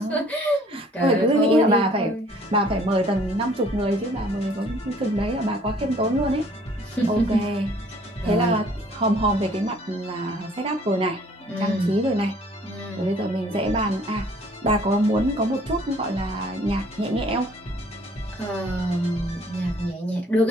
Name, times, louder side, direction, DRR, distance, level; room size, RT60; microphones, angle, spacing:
voice 1, 0.0-2.2 6.9-7.5 8.2-8.6 11.5-11.9 12.6-13.1 18.3-20.5, equal, 10° left, 1.0 m, -25 dB
voice 2, 0.7-2.1 2.5-6.5 7.1-7.7 8.2-11.2 11.6-12.4 13.0-14.3 14.6-17.5, right 1 dB, 30° right, 0.4 m, -24 dB
sound 1, 2.3-19.9, equal, 35° left, 0.7 m, -36 dB
2.2 x 2.1 x 2.7 m
head